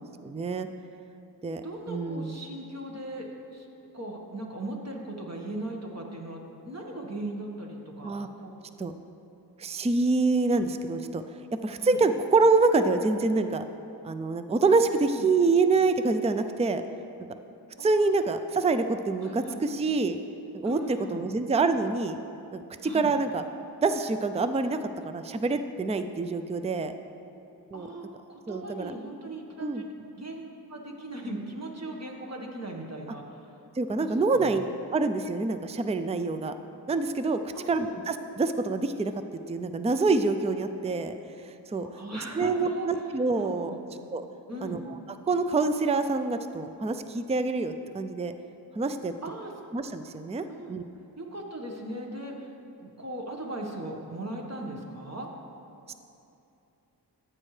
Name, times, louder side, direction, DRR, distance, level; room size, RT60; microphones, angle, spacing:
voice 1, 0.2-0.7 1.4-1.6 1.9-2.4 8.0-8.3 8.8-8.9 9.6-11.2 11.6-13.6 14.0-16.8 17.8-20.2 20.6-22.2 22.5-23.4 23.8-24.8 25.1-26.9 27.7-27.9 28.5-28.9 29.6-29.8 33.8-34.7 34.9-36.5 36.9-37.4 37.7-39.1 39.5-41.2 41.7-41.9 42.4-43.8 44.1-44.2 44.6-44.8 45.3-48.3 48.8-49.1 49.7-50.8 55.9-56.0, right 3 dB, 15° right, 9 dB, 0.4 m, -26 dB
voice 2, 1.6-3.7 3.9-8.5 11.8-12.0 14.8-15.3 17.8-18.2 19.2-19.6 20.6-21.3 22.8-23.1 27.7-33.5 34.0-34.5 37.5-38.0 41.8-43.8 44.5-44.8 49.2-49.5 50.5-50.8 51.2-52.5 52.8-55.3, right 1 dB, 40° right, 0 dB, 1.4 m, -38 dB
14.0 x 8.9 x 3.3 m, 2.7 s
wide cardioid pair, 65°, 40 cm